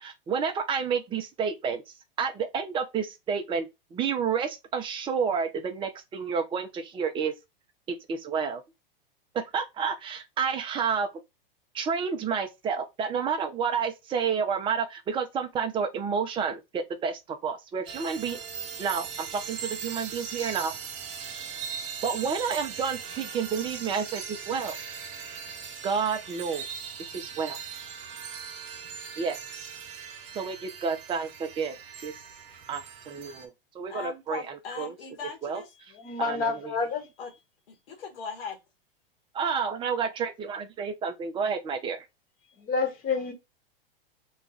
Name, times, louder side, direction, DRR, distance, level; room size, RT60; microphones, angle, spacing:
voice 1, 0.0-1.8 2.2-7.3 8.1-8.6 9.3-11.1 11.7-18.4 18.8-20.7 22.0-24.7 25.8-27.6 29.2-29.4 30.3-31.8 32.0-32.1 32.7-34.9 35.4-35.6 36.2-36.8 39.3-42.0, right 6 dB, 15° right, 0.5 m, -30 dB
sound 1, 17.9-33.5, right 7 dB, 40° right, 0.9 m, -39 dB
voice 2, 33.9-35.7 37.2-37.3 37.7-38.6, left 6 dB, 75° left, 1.4 m, -39 dB
voice 3, 35.9-37.1 42.6-43.3, left 4 dB, 30° left, 1.2 m, -28 dB
3.1 x 2.3 x 3.8 m
hypercardioid pair, 115°, 29 cm